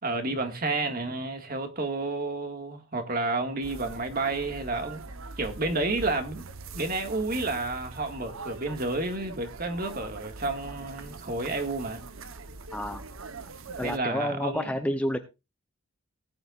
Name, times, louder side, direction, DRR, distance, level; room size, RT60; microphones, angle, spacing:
voice 1, 0.0-5.0 5.4-6.5 6.7-12.0 13.8-14.7, right 2 dB, 40° right, 1.9 m, -30 dB
sound 1, 3.6-14.0, right 3 dB, 65° right, 1.0 m, -42 dB
voice 2, 12.7-13.1 13.8-15.2, equal, 5° left, 0.7 m, -29 dB
19.0 x 10.0 x 2.5 m
head